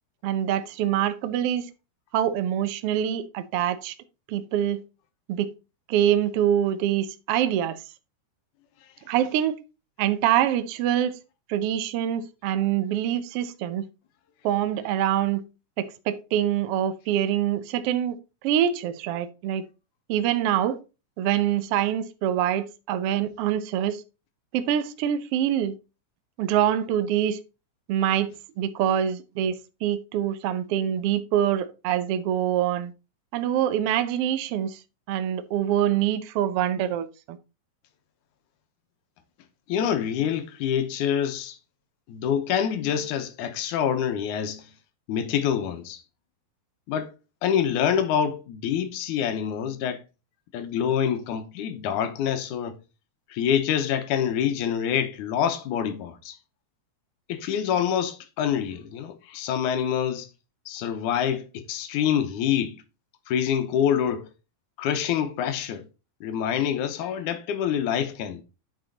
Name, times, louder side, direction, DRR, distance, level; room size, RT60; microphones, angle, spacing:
voice 1, 0.2-1.7 2.1-3.9 4.3-4.8 5.3-5.5 5.9-7.8 9.1-9.6 10.0-11.1 11.5-13.8 14.4-15.4 15.8-18.2 18.4-19.6 20.1-20.8 21.2-24.0 24.5-25.7 26.4-27.4 27.9-28.3 28.6-29.5 29.8-32.9 33.3-34.8 35.1-37.4, right 10 dB, 75° right, 1.4 m, -25 dB
voice 2, 39.7-41.6 42.1-44.6 45.1-46.0 46.9-47.1 47.4-50.0 50.5-52.8 53.3-56.3 57.3-60.3 60.7-62.8 63.3-64.3 64.8-65.8 66.2-68.4, left 9 dB, 85° left, 2.5 m, -26 dB
9.5 x 5.0 x 3.9 m
omnidirectional pair, 3.5 m